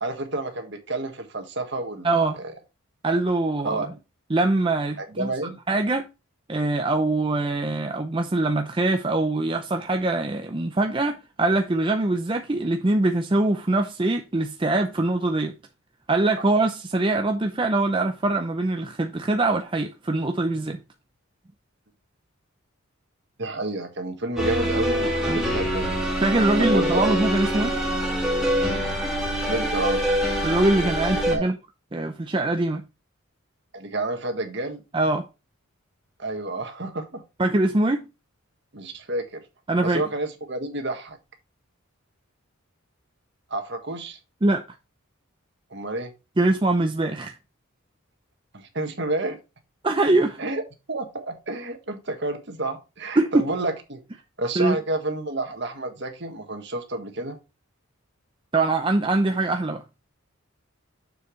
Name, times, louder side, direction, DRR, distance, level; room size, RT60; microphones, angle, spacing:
voice 1, 0.0-2.5 3.6-3.9 5.0-5.6 16.4-16.5 23.4-26.0 26.6-27.3 29.5-30.2 31.1-31.5 33.7-34.8 36.2-37.2 38.7-39.4 39.8-41.2 43.5-44.2 45.7-46.1 48.5-49.4 50.4-50.6 50.9-54.0 54.4-57.4, right 2 dB, 55° right, 1.5 m, -30 dB
voice 2, 2.0-2.4 3.0-3.8 4.3-5.3 5.7-6.1 6.5-15.5 16.1-20.8 25.3-25.4 26.2-27.7 30.4-31.6 31.9-32.8 34.9-35.2 37.4-38.0 39.7-40.0 44.4-44.6 46.4-47.4 49.8-50.4 53.2-53.4 54.6-54.8 58.5-59.8, right 2 dB, 25° right, 0.5 m, -23 dB
sound 1, 24.4-31.4, equal, 5° right, 2.4 m, -25 dB
7.0 x 6.6 x 3.2 m
head